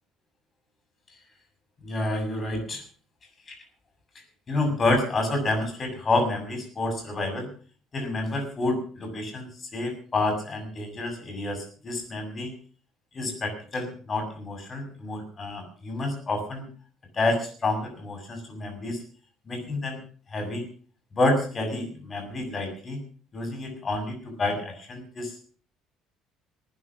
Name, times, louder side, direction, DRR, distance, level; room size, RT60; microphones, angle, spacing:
voice 1, 1.8-2.8 3.5-3.6 4.5-7.5 7.9-12.5 13.1-16.7 17.1-19.0 19.5-20.0 20.3-20.6 21.1-23.0 23.3-25.3, left 2 dB, 25° left, 5 dB, 7.1 m, -29 dB
20.0 x 9.8 x 6.3 m, 0.43 s
cardioid pair, 140°, 0 cm